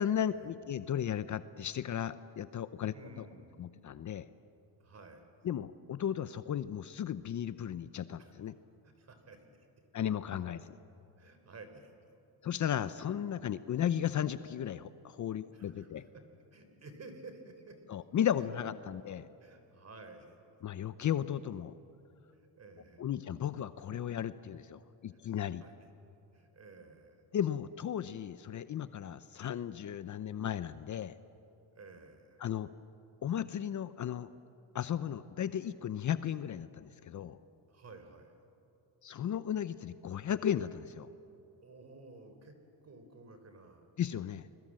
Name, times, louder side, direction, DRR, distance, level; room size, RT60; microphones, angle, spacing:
voice 1, 0.0-3.3 3.6-4.3 5.4-8.5 9.9-10.7 12.4-16.0 17.9-19.2 20.6-21.7 23.0-25.6 27.3-31.1 32.4-32.7 33.2-34.3 34.7-37.4 39.0-41.1 44.0-44.5, left 9 dB, 45° left, 13 dB, 0.8 m, -35 dB
voice 2, 2.9-3.6 4.8-5.3 8.2-8.3 8.8-9.6 11.2-11.9 15.5-16.2 16.5-17.8 18.6-18.8 19.4-20.4 22.3-23.0 25.6-25.9 26.3-27.2 31.7-32.4 37.7-38.4 41.6-42.6 42.8-43.9, right 3 dB, 35° right, 7 dB, 4.0 m, -53 dB
30.0 x 21.5 x 7.6 m, 2.8 s
cardioid pair, 105°, 42 cm